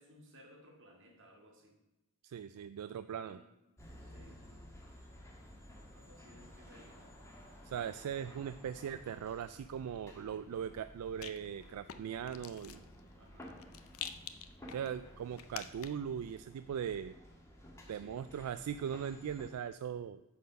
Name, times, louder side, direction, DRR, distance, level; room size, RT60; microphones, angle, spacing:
voice 1, 0.0-1.8 3.1-3.5 4.0-4.4 5.9-7.2 12.7-12.9 13.2-13.6 17.9-18.3, equal, 60° right, 2 dB, 1.8 m, -60 dB
voice 2, 2.2-3.4 7.6-12.8 14.7-17.1 17.9-20.2, right 8 dB, 85° right, 11 dB, 0.3 m, -40 dB
sound 1, 3.8-19.5, equal, 15° left, 1.4 m, -55 dB
Rattle, 10.1-16.2, left 9 dB, 65° left, 0.6 m, -50 dB
9.3 x 4.2 x 6.7 m, 0.99 s
head